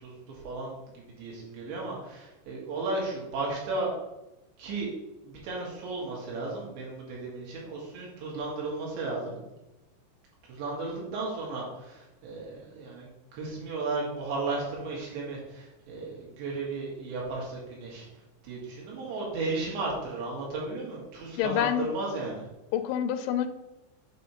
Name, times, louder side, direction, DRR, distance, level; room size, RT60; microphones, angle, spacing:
voice 1, 0.0-3.9 4.6-4.9 5.2-9.4 10.5-13.1 13.3-18.1 18.4-22.5, right 3 dB, 75° right, -3 dB, 4.1 m, -34 dB
voice 2, 21.4-21.9 22.7-23.5, left 10 dB, 85° left, 9 dB, 2.8 m, -27 dB
8.3 x 3.2 x 5.6 m, 0.97 s
omnidirectional pair, 5.2 m